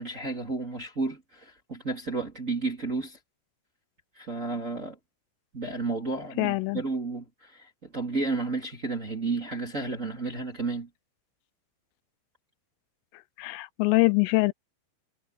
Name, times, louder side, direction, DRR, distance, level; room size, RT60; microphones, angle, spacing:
voice 1, 0.0-3.2 4.1-5.0 5.5-10.9, right 3 dB, 20° right, 2.3 m, -32 dB
voice 2, 6.4-6.8 13.4-14.5, left 24 dB, 85° left, 3.3 m, -24 dB
omnidirectional pair, 5.7 m